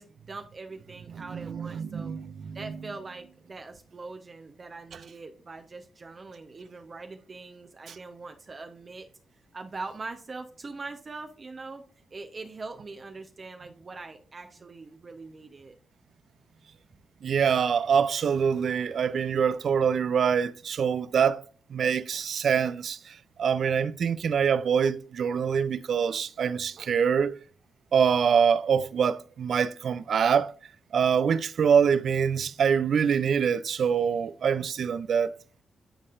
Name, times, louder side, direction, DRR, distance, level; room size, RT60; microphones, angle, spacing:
voice 1, 0.0-2.1 2.5-9.1 9.5-11.8 12.1-15.7, right 3 dB, 45° right, 0.7 m, -42 dB
voice 2, 1.3-2.8 17.2-21.4 21.7-27.4 27.9-30.5 30.9-35.3, right 7 dB, 70° right, 0.4 m, -25 dB
11.0 x 4.1 x 2.5 m
supercardioid pair, 50°, 0 cm